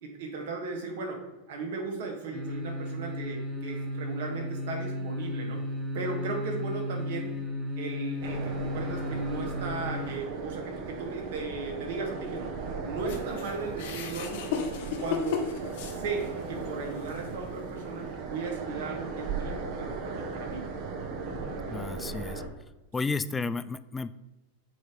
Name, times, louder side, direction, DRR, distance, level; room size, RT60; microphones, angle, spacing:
voice 1, 0.0-5.6 5.9-7.3 7.8-12.5 12.8-14.4 15.0-15.5 15.9-20.7, right 4 dB, 70° right, 1 dB, 1.9 m, -36 dB
sound 1, 2.3-10.2 10.5-10.6, left 1 dB, 5° right, 1.3 m, -34 dB
sound 2, 8.2-22.5, right 4 dB, 50° right, 1.2 m, -37 dB
sound 3, 13.1-16.5 17.0-17.2 18.1-18.2, left 7 dB, 65° left, 1.1 m, -34 dB
voice 2, 21.7-22.4 22.9-24.1, left 4 dB, 15° left, 14 dB, 0.3 m, -32 dB
8.0 x 3.1 x 5.2 m, 1.1 s
hypercardioid pair, 120°, 0 cm